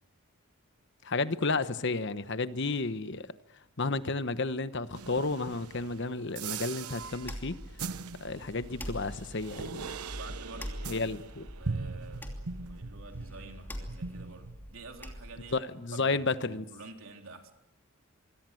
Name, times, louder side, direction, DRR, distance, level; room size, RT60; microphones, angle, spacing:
voice 1, 1.0-3.3 3.8-7.6 8.2-9.9 10.9-11.5 15.5-16.6, left 3 dB, 55° left, 1.0 m, -32 dB
sound 1, 4.9-13.6 13.9-15.0, right 4 dB, 90° right, 1.0 m, -41 dB
sound 2, 7.0-15.6, equal, 10° left, 2.8 m, -44 dB
voice 2, 10.1-11.1 11.6-17.5, right 3 dB, 65° right, 3.7 m, -49 dB
25.5 x 23.5 x 7.8 m
head